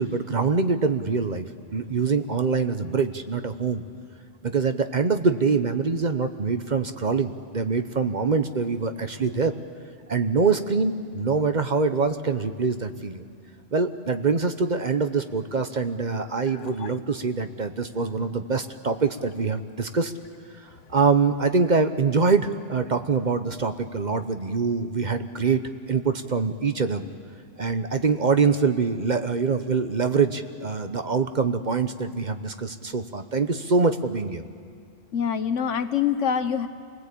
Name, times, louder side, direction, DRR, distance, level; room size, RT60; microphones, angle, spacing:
voice 1, 0.0-3.8 4.4-9.5 10.1-13.2 13.7-20.1 20.9-25.6 25.9-27.0 27.6-34.4, right 4 dB, 40° right, 8 dB, 1.0 m, -24 dB
voice 2, 16.5-16.9 35.1-36.7, left 8 dB, 80° left, 10 dB, 1.4 m, -26 dB
27.5 x 19.5 x 8.4 m, 2.2 s
omnidirectional pair, 1.2 m